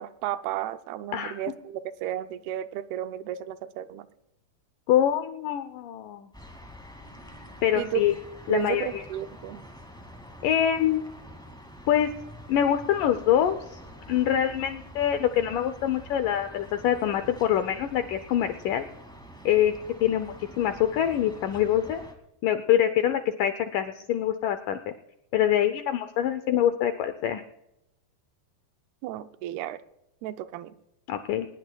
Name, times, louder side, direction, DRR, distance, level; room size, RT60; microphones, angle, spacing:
voice 1, 0.0-4.1 7.8-8.0 8.5-9.6 29.0-29.8 30.2-30.8, right 12 dB, 85° right, 10 dB, 2.6 m, -33 dB
voice 2, 4.9-6.3 7.6-8.1 8.5-9.0 10.4-11.0 11.9-12.1 12.5-13.8 14.1-18.9 19.5-19.7 20.0-22.0 22.4-24.9 25.3-27.4 31.1-31.5, left 10 dB, 80° left, 9 dB, 1.9 m, -25 dB
sound 1, 6.3-22.1, equal, 5° left, 0.3 m, -46 dB
22.0 x 19.5 x 2.3 m, 0.87 s
omnidirectional pair, 4.5 m